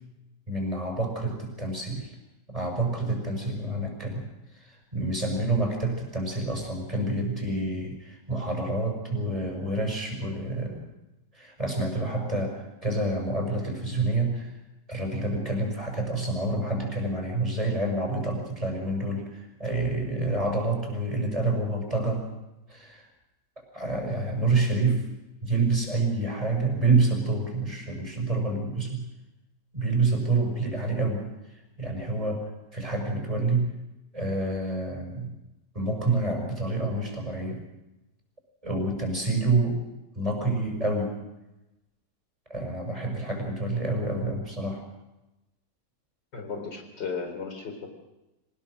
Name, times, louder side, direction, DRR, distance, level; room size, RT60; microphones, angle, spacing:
voice 1, 0.5-2.1 2.5-4.3 4.5-10.8 11.3-14.5 14.9-22.3 22.7-23.1 23.7-25.1 25.4-29.0 29.7-31.3 31.8-33.8 34.1-35.3 35.7-37.6 38.6-39.8 40.1-41.2 42.5-44.8, right 2 dB, 20° right, 1 dB, 6.0 m, -28 dB
voice 2, 46.3-47.9, left 5 dB, 75° left, 5 dB, 4.5 m, -35 dB
25.5 x 19.5 x 6.5 m, 0.99 s
omnidirectional pair, 1.9 m